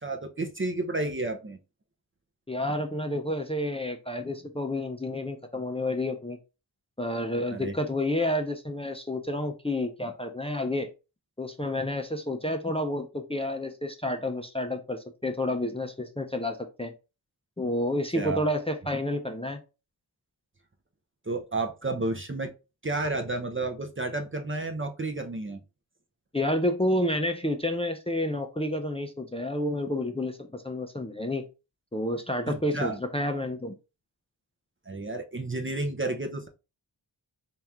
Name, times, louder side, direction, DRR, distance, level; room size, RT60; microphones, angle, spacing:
voice 1, 0.0-1.6 7.5-7.7 18.1-18.4 21.3-22.5 22.8-25.6 32.5-33.0 34.9-36.5, right 2 dB, 25° right, 0.7 m, -31 dB
voice 2, 2.5-6.4 7.0-10.9 11.4-16.9 17.6-19.6 26.3-31.5 31.9-33.7, left 1 dB, 10° left, 0.6 m, -30 dB
3.4 x 2.9 x 3.6 m
cardioid pair, 50°, 48 cm